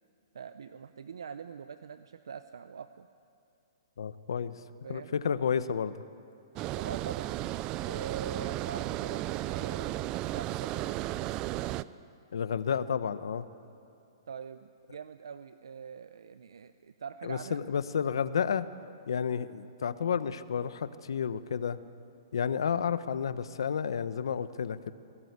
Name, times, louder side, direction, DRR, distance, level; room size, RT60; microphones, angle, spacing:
voice 1, 0.3-3.1 4.8-5.1 6.7-7.4 7.8-10.9 14.3-17.6, right 6 dB, 80° right, 11 dB, 0.8 m, -43 dB
voice 2, 4.0-4.5 4.9-6.0 12.3-13.5 17.2-18.7 19.1-21.8 22.3-24.9, left 7 dB, 80° left, 13 dB, 1.1 m, -31 dB
Water, 6.6-11.8, right 15 dB, 30° right, 0.5 m, -34 dB
24.0 x 18.0 x 8.3 m, 2.7 s
hypercardioid pair, 140°, 2 cm